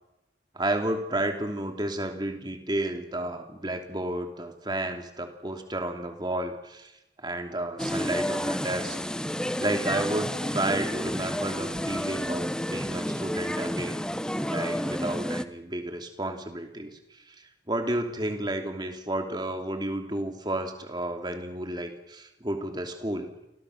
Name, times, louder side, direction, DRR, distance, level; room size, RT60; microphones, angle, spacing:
voice 1, 0.5-6.9 7.2-9.0 9.6-14.0 14.5-23.3, right 1 dB, 25° right, 4 dB, 3.0 m, -32 dB
sound 1, 7.8-15.4, equal, 5° left, 0.8 m, -30 dB
30.0 x 24.5 x 6.6 m, 0.92 s
head